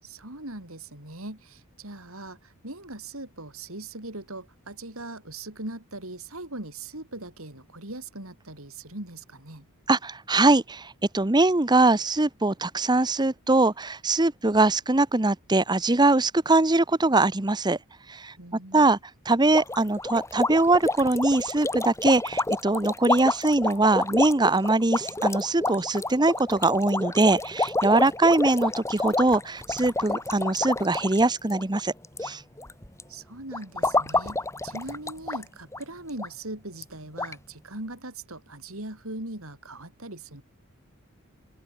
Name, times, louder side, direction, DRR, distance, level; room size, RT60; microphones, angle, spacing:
voice 1, 0.0-9.7 18.4-18.9 33.1-40.4, right 2 dB, 65° right, 5.8 m, -40 dB
voice 2, 9.9-17.8 18.1-18.3 18.7-19.0 19.3-31.9 32.2-32.4, right 2 dB, 20° right, 0.9 m, -22 dB
sound 1, 19.5-32.3 32.6-33.0 33.5-35.4 35.7-35.8 36.2-36.3 36.8-36.9 37.2-37.3, left 2 dB, 15° left, 2.8 m, -29 dB
open air
head